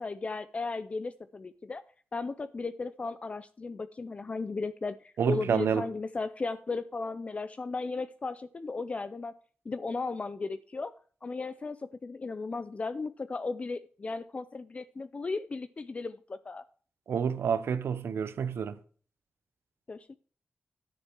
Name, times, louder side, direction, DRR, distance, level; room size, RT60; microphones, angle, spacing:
voice 1, 0.0-1.8 2.1-9.3 9.7-10.9 11.2-16.6 19.9-20.1, left 3 dB, 30° left, 0.4 m, -36 dB
voice 2, 5.2-5.9 17.1-18.8, right 7 dB, 85° right, 0.8 m, -29 dB
10.0 x 6.8 x 4.6 m
wide cardioid pair, 125°, 4 cm